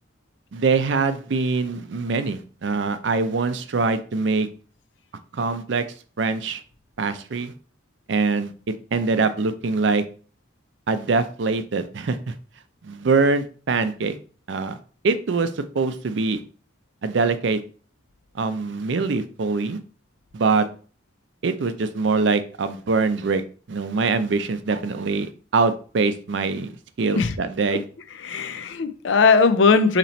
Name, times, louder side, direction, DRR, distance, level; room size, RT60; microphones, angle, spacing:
voice 1, 0.5-4.5 5.3-5.8 6.2-6.6 7.0-7.5 8.1-10.0 10.9-12.3 12.8-14.2 14.5-14.8 15.0-16.4 17.0-17.6 18.4-19.8 20.3-20.7 21.4-23.4 23.7-26.7 27.0-27.8, right 4 dB, 75° right, 0.5 m, -23 dB
voice 2, 28.2-30.0, left 4 dB, 80° left, 0.5 m, -18 dB
4.1 x 3.0 x 4.2 m
head